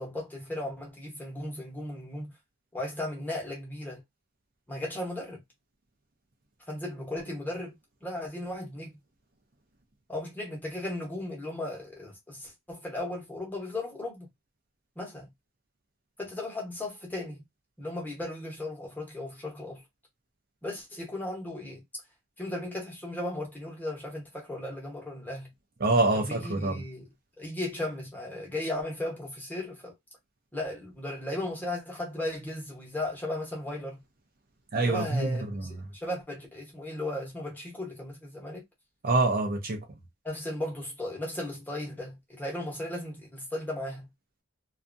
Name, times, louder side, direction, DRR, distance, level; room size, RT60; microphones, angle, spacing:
voice 1, 0.0-2.3 2.7-4.0 4.7-5.4 6.7-7.7 8.0-9.0 10.1-14.3 15.0-15.3 16.2-17.4 17.8-19.8 20.6-21.8 22.4-25.5 26.1-27.1 27.4-29.9 30.5-34.0 34.9-38.6 40.2-44.1, left 1 dB, 10° left, 0.9 m, -36 dB
voice 2, 25.8-26.8 34.7-35.7 39.0-39.8, right 2 dB, 40° right, 0.6 m, -26 dB
2.7 x 2.4 x 2.5 m
head